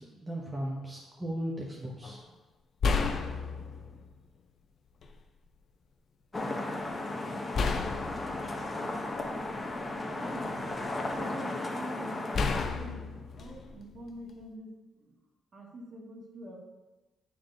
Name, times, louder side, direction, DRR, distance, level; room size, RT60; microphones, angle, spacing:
voice 1, 0.0-2.2, right 1 dB, 15° right, -3 dB, 1.0 m, -37 dB
sound 1, 2.0-2.2 2.8-4.1 5.0-5.1 7.5-9.7 10.3-11.1 12.3-14.4, left 4 dB, 55° left, 0.6 m, -32 dB
sound 2, 6.3-12.7, left 2 dB, 20° left, 0.9 m, -35 dB
voice 2, 9.9-15.1 15.5-16.6, right 1 dB, 45° right, -2 dB, 1.9 m, -46 dB
8.8 x 3.5 x 3.9 m, 1.1 s
cardioid pair, 90°, 0 cm